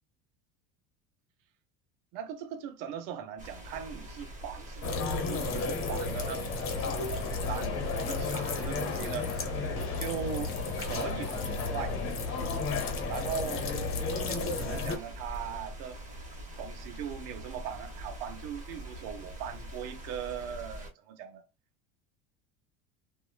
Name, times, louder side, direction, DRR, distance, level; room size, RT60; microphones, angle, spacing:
voice 1, 2.1-9.3 10.0-12.0 13.1-13.7 14.2-16.0 16.6-21.4, right 8 dB, 65° right, 0.7 m, -40 dB
sound 1, 3.4-20.9, equal, 25° right, 1.2 m, -44 dB
sound 2, 4.8-15.0, left 4 dB, 45° left, 1.1 m, -33 dB
3.0 x 2.4 x 2.3 m
supercardioid pair, 110°, 31 cm